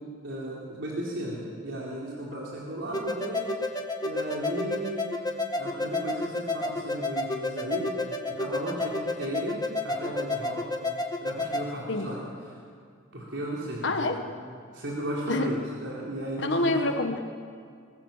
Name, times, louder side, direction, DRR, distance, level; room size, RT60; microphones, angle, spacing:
voice 1, 0.2-3.5 4.0-5.1 5.5-7.9 8.2-9.6 9.8-10.6 11.2-12.6 13.1-14.1 14.7-16.9, right 1 dB, 70° right, -5 dB, 3.9 m, -35 dB
sound 1, 2.9-11.7, left 2 dB, 20° left, 1.5 m, -31 dB
voice 2, 13.8-14.2 15.3-15.5 16.4-17.2, left 2 dB, 65° left, 5 dB, 1.4 m, -26 dB
23.5 x 19.5 x 7.4 m, 2.2 s
head